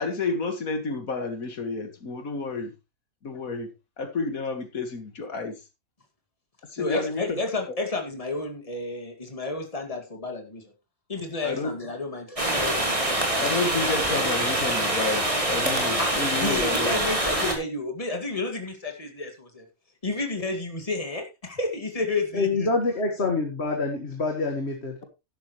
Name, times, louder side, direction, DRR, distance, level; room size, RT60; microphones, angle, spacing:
voice 1, 0.0-2.7 3.2-3.7 4.0-5.6 6.7-7.4 11.4-11.7 13.3-16.9 23.2-23.3, left 3 dB, 75° left, 2.2 m, -30 dB
voice 2, 6.8-10.6 11.1-13.0 16.0-19.7 20.0-22.7, left 3 dB, 25° left, 2.4 m, -31 dB
sound 1, 12.4-17.5, right 1 dB, 20° right, 3.2 m, -25 dB
voice 3, 22.3-25.0, left 3 dB, 50° left, 1.9 m, -26 dB
12.0 x 11.5 x 3.2 m
omnidirectional pair, 1.5 m